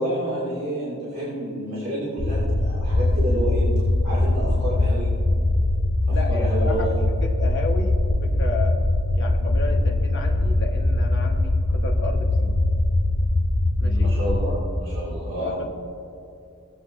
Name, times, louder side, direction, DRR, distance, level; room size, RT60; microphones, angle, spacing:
voice 1, 0.0-3.7 4.0-5.1 6.1-7.0 13.8-15.6, right 1 dB, 40° right, -9 dB, 2.3 m, -29 dB
sound 1, 2.2-14.5, left 2 dB, 80° left, 1.0 m, -21 dB
voice 2, 6.1-8.8 9.1-12.6 13.8-14.1 15.4-15.7, left 2 dB, 55° left, 2 dB, 1.3 m, -32 dB
20.5 x 7.8 x 2.7 m, 2.6 s
head